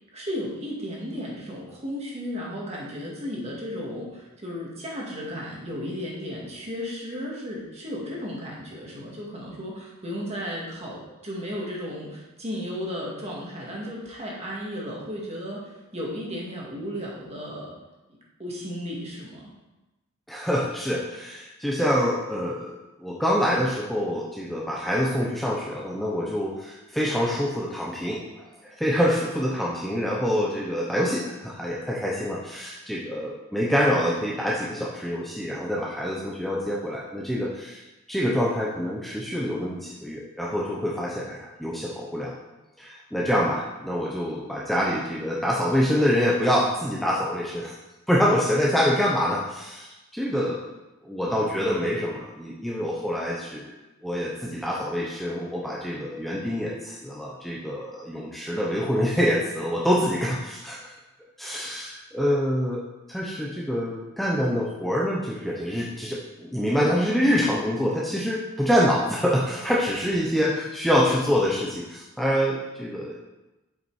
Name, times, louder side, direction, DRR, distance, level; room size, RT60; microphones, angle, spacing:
voice 1, 0.1-17.7 18.4-19.5 61.6-61.8, equal, 30° right, -3 dB, 1.9 m, -34 dB
voice 2, 20.3-22.7 23.0-42.3 42.8-47.8 48.1-50.6 51.0-53.7 54.0-60.9 61.4-62.8 63.1-73.2, equal, ahead, -4 dB, 0.7 m, -26 dB
7.4 x 5.6 x 4.8 m, 1.0 s
head